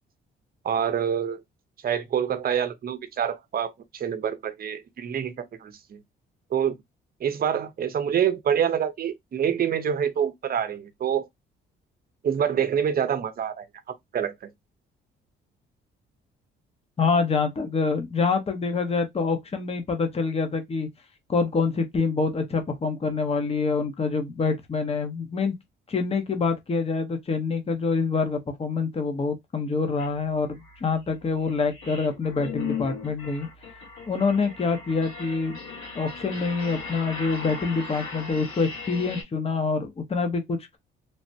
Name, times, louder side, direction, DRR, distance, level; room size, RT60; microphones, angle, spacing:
voice 1, 0.6-1.4 1.8-6.0 6.5-6.8 7.2-11.3 12.2-13.7 14.1-14.3, right 8 dB, 50° right, 0.7 m, -26 dB
voice 2, 17.0-20.9 21.3-25.5 25.9-33.5 34.1-35.6 35.9-40.8, left 4 dB, 30° left, 0.8 m, -26 dB
sound 1, 30.0-30.1 30.5-39.2, left 5 dB, 85° left, 1.8 m, -37 dB
3.3 x 2.1 x 2.7 m
cardioid pair, 90°, 20 cm